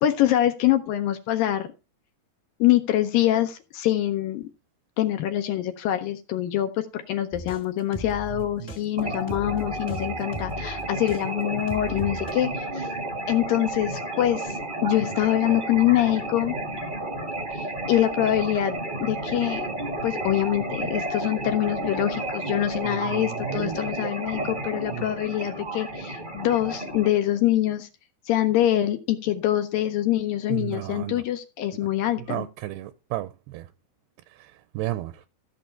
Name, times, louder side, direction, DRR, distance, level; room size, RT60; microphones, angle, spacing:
voice 1, 0.0-1.7 2.6-4.4 5.0-12.9 13.3-16.6 17.5-19.7 20.0-27.9 28.3-32.5, left 13 dB, 80° left, 2.2 m, -25 dB
sound 1, 7.3-11.2 11.7-12.3, left 1 dB, 30° left, 1.5 m, -37 dB
voice 2, 8.3-8.8 22.8-23.8 24.9-25.1 30.5-31.2 32.2-33.7 34.3-35.2, right 15 dB, 85° right, 2.6 m, -34 dB
sound 2, 9.0-27.1, right 2 dB, 55° right, 0.5 m, -32 dB
14.0 x 6.6 x 4.4 m
omnidirectional pair, 4.6 m